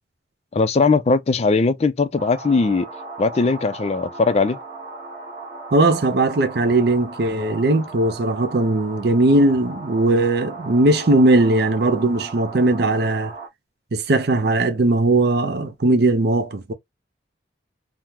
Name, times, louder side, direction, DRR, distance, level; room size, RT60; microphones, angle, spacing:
voice 1, 0.5-2.9 3.2-4.6, left 4 dB, 35° left, 0.3 m, -19 dB
sound 1, 2.2-13.5, right 3 dB, 25° right, 1.2 m, -37 dB
voice 2, 5.7-13.3 13.9-16.7, right 2 dB, 60° right, 0.6 m, -18 dB
3.6 x 2.0 x 2.8 m
head